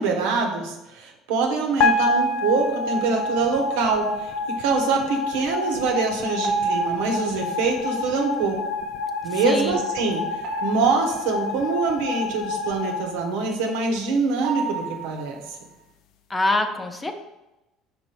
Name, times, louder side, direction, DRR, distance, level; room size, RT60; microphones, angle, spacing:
voice 1, 0.0-8.6 9.2-15.4, right 4 dB, 85° right, 2 dB, 1.1 m, -24 dB
sound 1, 1.8-14.1, left 2 dB, 65° left, 0.5 m, -28 dB
sound 2, 3.4-3.8 6.4-7.6 10.4-11.5 14.4-15.6, right 6 dB, 65° right, 0.9 m, -30 dB
voice 2, 9.3-9.8 16.3-17.1, left 2 dB, 15° left, 6 dB, 0.7 m, -24 dB
5.5 x 4.2 x 4.4 m, 0.97 s
supercardioid pair, 100°, 0 cm